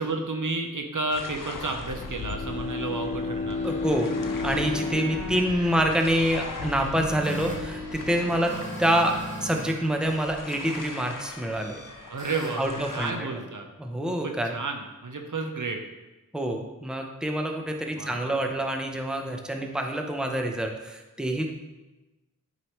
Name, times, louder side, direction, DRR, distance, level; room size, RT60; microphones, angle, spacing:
voice 1, 0.0-3.8 12.1-13.7 14.1-15.8 18.0-18.5, right 3 dB, 70° right, 3 dB, 0.8 m, -32 dB
sound 1, 1.1-13.1, left 4 dB, 75° left, 0.6 m, -41 dB
Bowed string instrument, 1.9-6.3, left 3 dB, 25° left, 0.4 m, -32 dB
sound 2, 3.5-9.7 10.0-13.3, equal, 25° right, 2.3 m, -39 dB
voice 2, 3.6-8.5 8.8-11.8 12.6-13.1 13.8-14.5 16.3-21.5, right 1 dB, ahead, 3 dB, 0.8 m, -27 dB
9.3 x 4.8 x 3.1 m, 1.1 s
wide cardioid pair, 65°, 33 cm